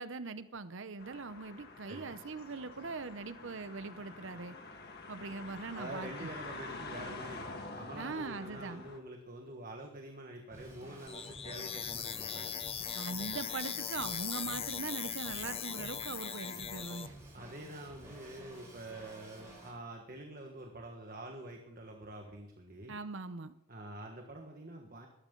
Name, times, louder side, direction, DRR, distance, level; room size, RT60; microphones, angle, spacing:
voice 1, 0.0-4.6 5.1-6.3 8.0-8.8 13.0-17.1 22.9-23.5, right 4 dB, 60° right, 12 dB, 0.7 m, -41 dB
sound 1, 1.0-9.0, left 3 dB, 45° left, 1.7 m, -47 dB
voice 2, 5.7-12.5 17.3-23.0 23.7-25.1, right 1 dB, 40° right, 2 dB, 1.5 m, -46 dB
Drum kit / Drum, 10.5-19.7, right 1 dB, 15° right, 6.1 m, -52 dB
sound 2, 11.1-17.1, left 8 dB, 25° left, 0.7 m, -39 dB
18.5 x 13.5 x 3.9 m, 0.82 s
head